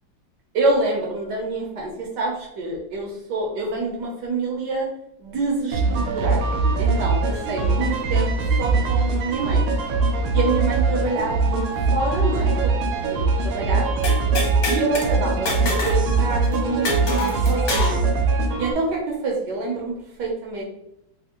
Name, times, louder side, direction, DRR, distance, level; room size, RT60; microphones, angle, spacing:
voice 1, 0.5-4.9 5.2-8.3 8.6-9.7 10.3-12.7 13.1-13.2 13.5-13.9 14.7-18.0 18.6-19.9 20.2-20.6, right 3 dB, 65° right, -1 dB, 1.1 m, -26 dB
sound 1, 5.7-18.7, right 3 dB, 85° right, 1.5 m, -22 dB
sound 2, 14.0-15.1 15.5-16.0 16.3-16.4 16.8-18.0, left 2 dB, 65° left, 1.4 m, -26 dB
3.4 x 2.7 x 2.8 m, 0.78 s
omnidirectional pair, 2.3 m